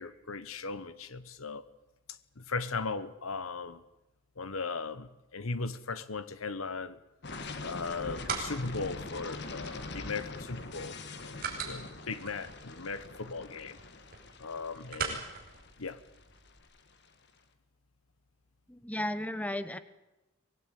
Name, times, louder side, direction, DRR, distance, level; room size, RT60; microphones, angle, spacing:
voice 1, 0.0-1.6 2.4-3.8 4.4-7.0 7.6-13.8 14.4-15.2 15.8-16.0, left 4 dB, 85° left, 1.2 m, -38 dB
sound 1, 7.2-17.0, left 3 dB, 55° left, 1.8 m, -43 dB
sound 2, 7.7-16.6, right 5 dB, 45° right, 5.5 m, -43 dB
voice 2, 18.7-19.8, left 1 dB, 5° left, 1.0 m, -34 dB
24.5 x 18.5 x 9.1 m
head